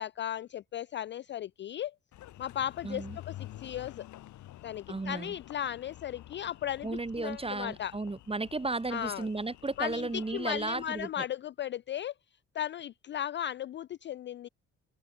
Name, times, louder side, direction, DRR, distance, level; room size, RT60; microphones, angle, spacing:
voice 1, 0.0-1.9 2.4-4.1 4.6-7.9 8.9-9.3 9.8-12.1 12.5-14.5, left 10 dB, 35° left, 0.4 m, -36 dB
Engine, 2.1-11.1, left 14 dB, 60° left, 3.0 m, -50 dB
voice 2, 2.8-3.2 4.9-5.4 6.8-11.2, right 3 dB, 15° right, 2.9 m, -34 dB
open air
hypercardioid pair, 50°, 33 cm